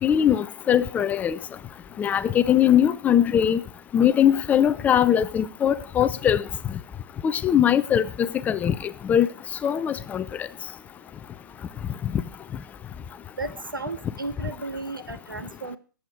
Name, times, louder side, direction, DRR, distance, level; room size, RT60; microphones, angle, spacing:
voice 1, 0.0-1.4 2.0-3.6 3.9-6.4 6.7-6.8 7.2-9.3 9.6-10.5 12.0-12.2, left 9 dB, 15° left, 0.6 m, -21 dB
voice 2, 13.4-15.8, right 3 dB, 90° right, 1.8 m, -34 dB
20.0 x 7.9 x 4.7 m
figure-of-eight pair, 125°, 11 cm